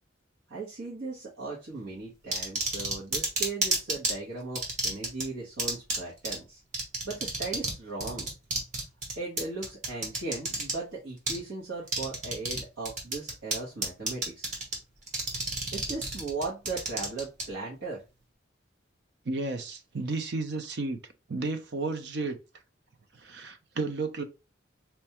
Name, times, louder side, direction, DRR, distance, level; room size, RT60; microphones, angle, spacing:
voice 1, 0.5-6.6 7.0-8.3 9.2-14.5 15.7-18.0, right 3 dB, 80° right, 1.0 m, -37 dB
sound 1, 2.3-4.1 4.5-5.2 5.6-6.0 6.2-6.3 6.7-7.7 8.0-10.7 11.3-11.4 11.9-12.6 12.8-13.5 13.8-14.7 15.1-17.4, right 2 dB, 40° right, 1.1 m, -29 dB
voice 2, 19.3-21.0 21.3-22.4 23.1-24.2, right 3 dB, 60° right, 0.5 m, -32 dB
4.3 x 2.3 x 2.9 m
head